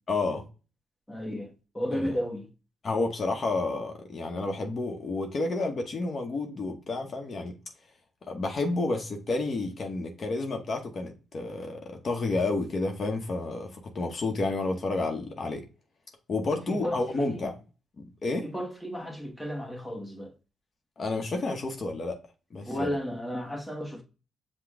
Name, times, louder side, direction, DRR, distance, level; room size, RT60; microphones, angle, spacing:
voice 1, 0.1-0.4 1.9-2.1 2.8-7.6 8.3-15.6 16.3-17.6 18.0-18.5 21.0-22.2 22.5-22.9, left 3 dB, 50° left, 0.9 m, -30 dB
voice 2, 1.1-2.5 16.7-17.5 18.4-20.3 22.7-24.0, equal, 5° left, 1.1 m, -33 dB
5.9 x 2.2 x 3.5 m
cardioid pair, 80°, 0 cm